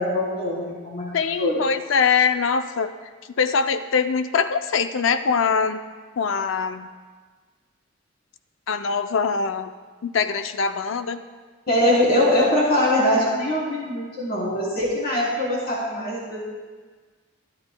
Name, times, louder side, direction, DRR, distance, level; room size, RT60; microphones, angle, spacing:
voice 1, 0.0-1.1 1.4-1.6 11.7-16.4, left 1 dB, 50° left, -6 dB, 3.6 m, -22 dB
voice 2, 1.1-2.9 3.4-5.8 6.2-6.9 8.7-9.7 10.0-11.2, left 5 dB, 80° left, 10 dB, 0.5 m, -23 dB
29.0 x 10.5 x 2.2 m, 1.5 s
head